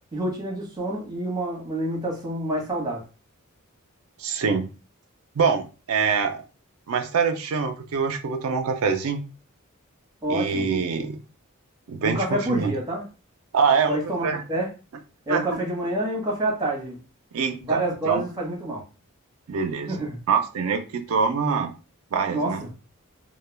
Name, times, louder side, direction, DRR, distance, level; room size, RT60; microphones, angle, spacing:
voice 1, 0.0-3.0 10.2-10.7 12.0-13.0 13.9-14.7 15.3-17.0 17.6-18.8 19.9-20.2 22.3-22.7, right 1 dB, 20° right, 0.9 m, -28 dB
voice 2, 4.2-4.7 5.4-6.4 6.9-9.2 10.3-11.2 11.9-12.7 13.5-14.4 15.3-15.6 17.3-18.2 19.5-21.7 22.1-22.6, right 5 dB, 80° right, 0.4 m, -25 dB
2.2 x 2.1 x 3.2 m
head